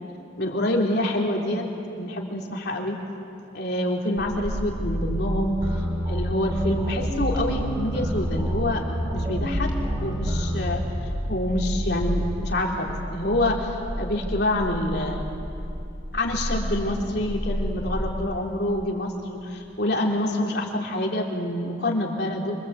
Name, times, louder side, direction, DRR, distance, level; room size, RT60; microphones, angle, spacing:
voice 1, 0.4-1.7 2.0-3.0 3.5-5.6 6.0-8.8 9.1-9.7 10.0-10.8 11.3-15.2 16.1-22.6, left 1 dB, 55° left, 0 dB, 3.5 m, -26 dB
sound 1, 4.2-18.1, equal, 35° left, 2.9 m, -31 dB
sound 2, 5.6-10.7, equal, 20° right, 3.7 m, -28 dB
27.5 x 24.5 x 8.2 m, 2.6 s
head